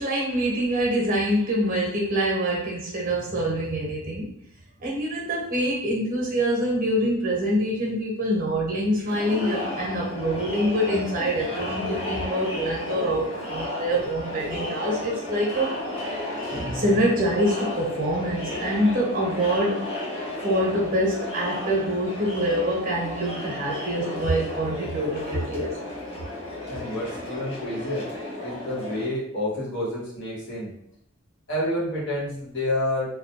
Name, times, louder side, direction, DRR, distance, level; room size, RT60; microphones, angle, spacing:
voice 1, 0.0-4.3 4.8-15.8 16.5-19.8 20.4-25.8, equal, 40° right, -2 dB, 0.8 m, -25 dB
Crowd, 9.1-29.0, left 1 dB, 30° left, 0.8 m, -33 dB
voice 2, 26.7-28.1 28.4-30.7 31.5-33.1, left 1 dB, 60° left, -6 dB, 1.0 m, -29 dB
2.1 x 2.1 x 2.8 m, 0.72 s
head